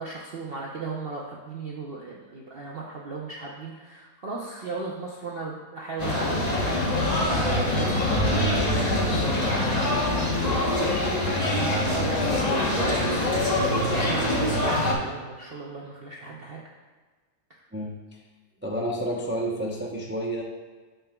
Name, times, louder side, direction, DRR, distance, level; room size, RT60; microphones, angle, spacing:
voice 1, 0.0-16.6, right 3 dB, 50° right, -3 dB, 0.8 m, -36 dB
sound 1, 6.0-14.9, left 1 dB, 30° left, 1.0 m, -24 dB
voice 2, 17.7-18.2 18.6-20.4, right 1 dB, 20° right, -2 dB, 0.3 m, -30 dB
8.9 x 7.0 x 2.3 m, 1.4 s
omnidirectional pair, 1.7 m